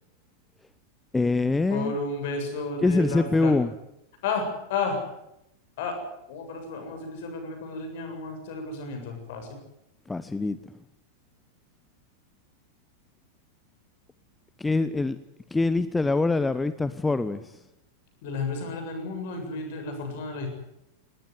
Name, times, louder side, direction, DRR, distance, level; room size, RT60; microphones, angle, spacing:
voice 1, 1.1-2.0 2.8-3.7 10.1-10.6 14.6-15.2 15.5-17.6, left 3 dB, 10° left, 14 dB, 0.9 m, -24 dB
voice 2, 1.7-3.5 4.2-5.0 5.8-6.0 6.3-9.6 18.2-20.5, left 3 dB, 50° left, 5 dB, 7.8 m, -32 dB
19.5 x 19.5 x 9.9 m, 0.86 s
figure-of-eight pair, 90°, 0 cm